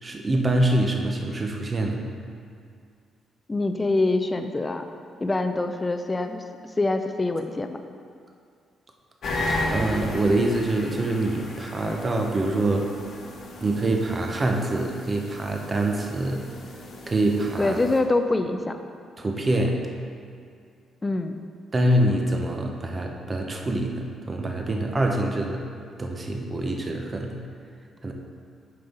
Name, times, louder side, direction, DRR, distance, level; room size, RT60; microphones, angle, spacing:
voice 1, 0.0-2.1 9.7-12.9 13.6-16.5 17.1-17.8 19.2-19.9 21.7-25.7 26.0-27.4 28.0-28.1, right 1 dB, 30° right, 2 dB, 0.9 m, -25 dB
voice 2, 3.5-4.9 5.2-6.4 6.8-7.8 17.6-18.8 21.0-21.3, left 2 dB, 20° left, 7 dB, 0.5 m, -25 dB
sound 1, 9.2-18.0, left 1 dB, 60° left, 1.1 m, -34 dB
8.5 x 5.5 x 4.0 m, 2.3 s
cardioid pair, 90°, 0 cm